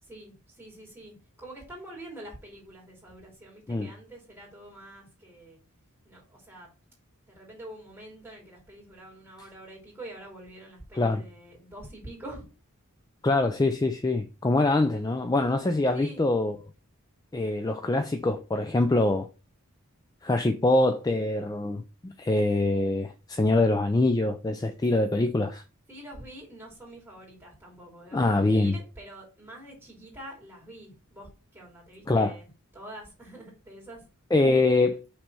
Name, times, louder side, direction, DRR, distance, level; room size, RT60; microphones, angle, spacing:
voice 1, 0.0-5.6 6.0-6.7 7.3-12.5 15.9-16.2 25.9-34.0, right 1 dB, 10° right, 2.9 m, -46 dB
voice 2, 13.2-16.6 17.3-19.3 20.2-25.6 28.1-28.8 32.1-32.3 34.3-35.0, left 2 dB, 15° left, 0.3 m, -24 dB
5.8 x 3.3 x 5.4 m
head